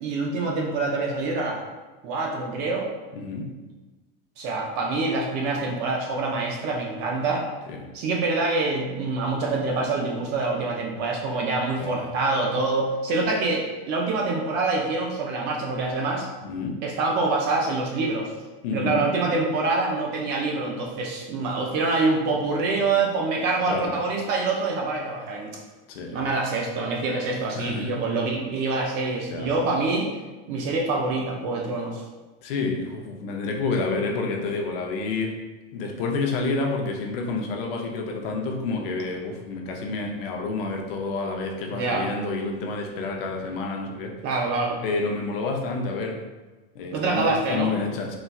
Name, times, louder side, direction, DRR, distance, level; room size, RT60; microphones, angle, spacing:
voice 1, 0.0-1.6 2.0-2.9 4.4-7.5 7.9-16.3 16.8-18.3 18.7-25.6 26.1-30.1 30.5-32.0 41.7-42.1 44.2-44.8 46.9-47.7, right 3 dB, 35° right, 0 dB, 0.4 m, -25 dB
voice 2, 3.1-3.5 7.7-7.9 11.7-12.1 16.4-16.8 18.6-19.1 23.7-24.0 25.9-26.2 27.5-28.0 29.3-29.5 32.4-35.4 35.7-44.2 44.8-46.2 46.7-48.2, left 3 dB, 65° left, 2 dB, 0.6 m, -29 dB
4.0 x 2.2 x 2.3 m, 1.2 s
supercardioid pair, 160°, 30 cm